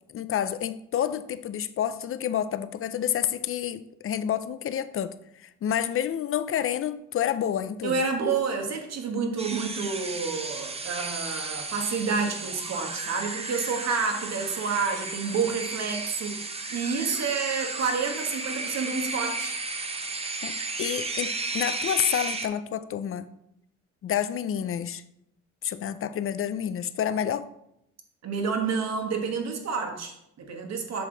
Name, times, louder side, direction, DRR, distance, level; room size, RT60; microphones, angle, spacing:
voice 1, 0.1-8.0 20.4-20.5 20.8-23.3 24.0-25.0 25.6-27.5, left 9 dB, 45° left, 13 dB, 0.5 m, -29 dB
voice 2, 7.8-16.4 16.7-19.5 28.2-31.1, right 5 dB, 60° right, 4 dB, 1.4 m, -29 dB
sound 1, 9.4-22.5, right 3 dB, 20° right, 0.8 m, -34 dB
7.7 x 5.7 x 3.9 m, 0.79 s
cardioid pair, 90°, 30 cm